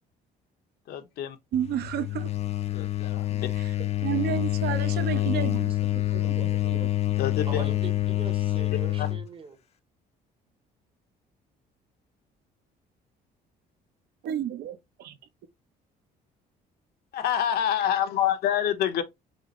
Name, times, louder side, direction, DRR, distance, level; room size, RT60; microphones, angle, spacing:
voice 1, 0.9-1.4 2.7-3.5 7.2-7.7 9.0-9.1 17.1-19.0, left 10 dB, 70° left, 0.8 m, -27 dB
sound 1, 1.5-9.3, left 15 dB, 40° left, 0.5 m, -27 dB
voice 2, 1.5-2.3 3.6-3.7 4.0-6.9 14.2-15.2, right 10 dB, 70° right, 0.8 m, -32 dB
voice 3, 7.5-9.6, right 5 dB, 30° right, 0.9 m, -41 dB
5.4 x 2.5 x 3.0 m
cardioid pair, 110°, 17 cm